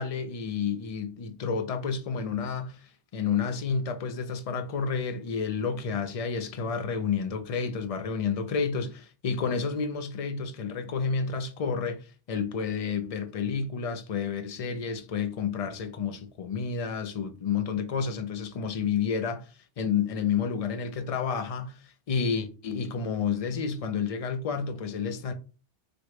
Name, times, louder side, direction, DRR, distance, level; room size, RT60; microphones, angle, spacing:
voice 1, 0.0-2.8 3.1-19.5 19.8-21.8 22.1-25.3, left 6 dB, 45° left, 0.5 m, -30 dB
4.3 x 2.2 x 4.7 m
omnidirectional pair, 1.2 m